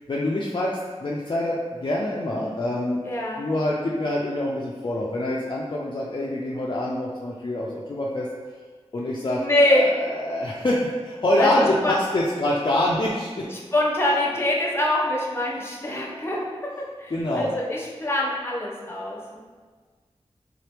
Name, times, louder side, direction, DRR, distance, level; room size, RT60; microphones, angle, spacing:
voice 1, 0.1-0.7 1.0-3.0 3.4-8.3 8.9-13.5 17.1-17.5, left 1 dB, 45° left, -4 dB, 0.4 m, -25 dB
voice 2, 3.0-3.5 9.4-9.9 11.4-12.0 13.5-19.4, left 1 dB, 20° left, -3 dB, 0.8 m, -24 dB
3.8 x 2.9 x 3.3 m, 1.5 s
wide cardioid pair, 75°, 11 cm